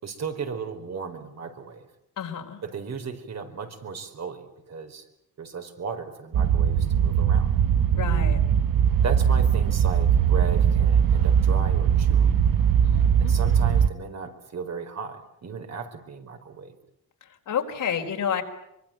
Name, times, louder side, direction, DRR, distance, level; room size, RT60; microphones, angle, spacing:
voice 1, 0.0-1.9 2.6-5.0 5.4-7.5 9.0-12.3 13.2-16.8, right 5 dB, 50° right, 5 dB, 4.7 m, -35 dB
voice 2, 2.2-2.6 7.9-8.4 12.8-13.3 17.5-18.4, left 8 dB, 65° left, 4 dB, 4.6 m, -29 dB
sound 1, 6.3-13.9, right 8 dB, 85° right, 1.3 m, -20 dB
24.5 x 24.5 x 9.0 m, 0.81 s
cardioid pair, 120°, 33 cm